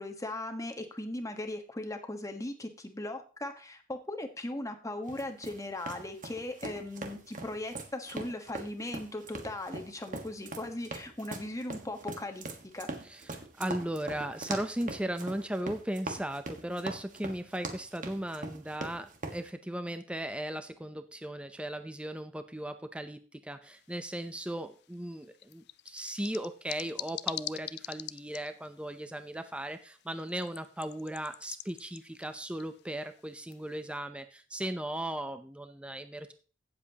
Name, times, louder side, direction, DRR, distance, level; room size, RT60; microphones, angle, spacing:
voice 1, 0.0-12.5 12.7-12.9, left 1 dB, 15° left, 5 dB, 1.3 m, -38 dB
sound 1, 5.1-19.4, right 2 dB, 45° right, 1.5 m, -41 dB
voice 2, 13.1-36.3, right 1 dB, 5° right, 9 dB, 0.6 m, -37 dB
sound 2, 23.6-34.0, left 14 dB, 60° left, 0.4 m, -46 dB
16.5 x 7.5 x 2.9 m, 0.39 s
head